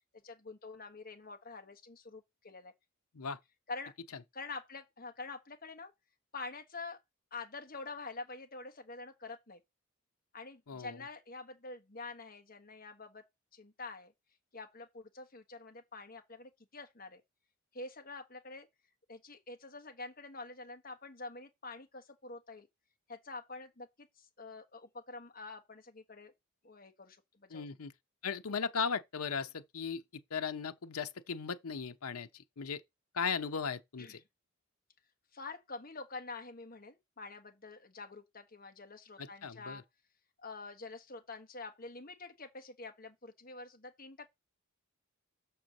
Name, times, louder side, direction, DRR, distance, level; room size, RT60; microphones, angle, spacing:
voice 1, 0.2-2.7 3.7-3.9 4.3-5.9 6.3-7.0 7.3-9.6 10.3-13.2 13.5-14.1 14.5-17.2 17.7-18.7 19.1-22.7 23.1-26.3 26.6-27.7 34.0-34.2 35.3-39.8 40.4-44.3, left 3 dB, 40° left, 1.3 m, -47 dB
voice 2, 10.7-11.0 27.5-27.9 28.2-30.0 30.3-32.8 33.1-34.2 39.2-39.8, left 5 dB, 90° left, 0.8 m, -37 dB
6.2 x 4.4 x 6.5 m
head